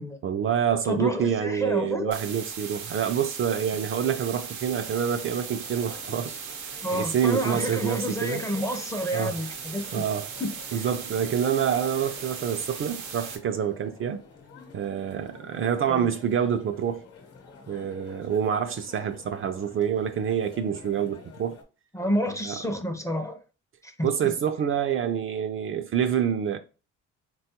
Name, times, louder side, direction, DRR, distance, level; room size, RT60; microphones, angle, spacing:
voice 1, 0.2-6.4 6.9-8.4 9.1-9.4 9.9-10.3 10.7-14.2 14.7-17.0 17.7-21.6 22.4-22.6 24.0-26.6, right 8 dB, 45° right, 0.4 m, -27 dB
voice 2, 0.8-2.1 6.8-10.0 10.4-10.9 15.9-16.1 21.9-23.4 23.8-24.3, equal, 10° left, 0.5 m, -30 dB
sound 1, 2.1-13.4, right 6 dB, 85° right, 0.7 m, -38 dB
sound 2, 4.6-21.6, left 5 dB, 55° left, 0.9 m, -50 dB
3.6 x 2.3 x 2.8 m
cardioid pair, 90°, 30 cm